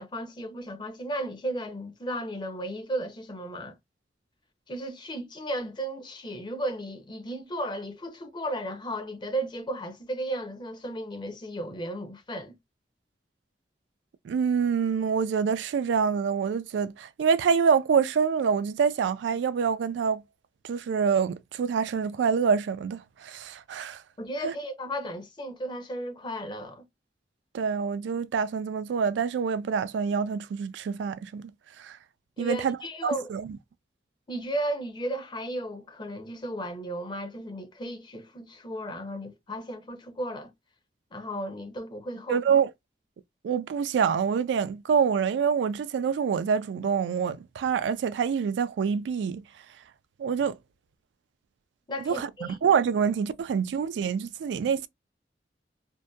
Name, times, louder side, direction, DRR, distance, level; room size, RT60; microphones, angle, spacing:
voice 1, 0.0-3.8 4.7-12.6 24.2-26.8 32.4-33.3 34.3-40.5 41.1-42.4 51.9-52.6, right 1 dB, 25° left, 0.6 m, -34 dB
voice 2, 14.2-20.2 20.6-24.0 24.4-24.5 27.5-31.5 31.8-32.0 32.4-32.8 33.0-33.5 42.3-42.7 43.4-49.4 50.2-50.6 52.1-52.3 52.6-54.9, right 6 dB, 85° right, 0.3 m, -26 dB
2.6 x 2.1 x 2.3 m
head